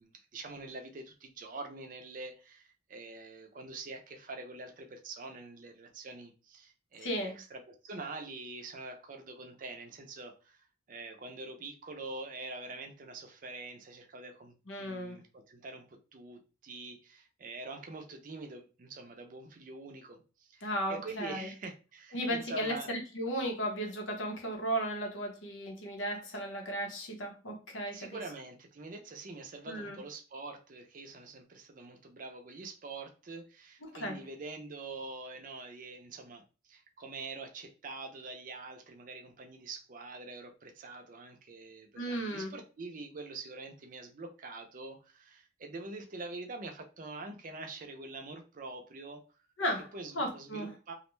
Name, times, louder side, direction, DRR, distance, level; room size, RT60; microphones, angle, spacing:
voice 1, 0.0-22.9 27.9-49.2 49.9-50.9, right 3 dB, 45° right, 4 dB, 0.4 m, -45 dB
voice 2, 7.0-7.4 14.7-15.2 20.6-21.5 22.1-28.2 29.7-30.0 33.8-34.2 42.0-42.5 49.6-49.9 50.1-50.7, equal, 85° left, 1 dB, 0.8 m, -35 dB
2.4 x 2.1 x 3.0 m, 0.34 s
head